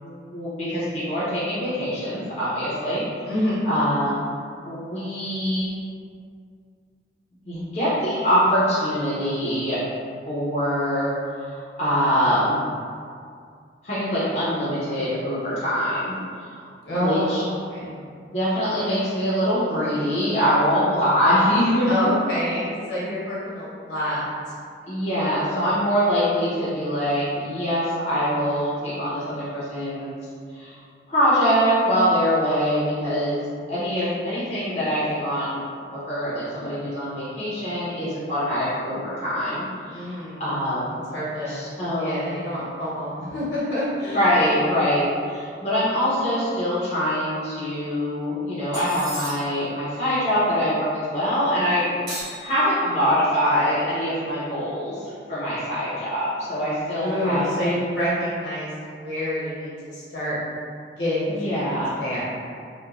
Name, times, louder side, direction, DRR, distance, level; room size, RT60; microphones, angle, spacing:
voice 1, 0.0-3.0 3.7-4.3 4.6-5.7 7.4-9.8 10.2-11.1 11.5-12.6 13.8-16.1 16.9-17.4 18.3-22.1 24.9-30.2 30.5-30.7 31.1-33.4 33.7-35.6 35.9-40.9 41.5-42.3 44.0-57.7 61.3-61.9, equal, 40° left, -11 dB, 0.6 m, -24 dB
voice 2, 3.2-3.6 16.8-18.0 21.8-24.3 39.9-40.4 41.1-41.7 42.0-44.2 56.9-58.7 59.0-60.4 61.0-62.2, left 1 dB, 75° left, -9 dB, 1.0 m, -27 dB
sound 1, 48.7-49.7 52.1-53.1, right 1 dB, 70° right, 1.3 m, -36 dB
2.9 x 2.2 x 2.3 m, 2.2 s
head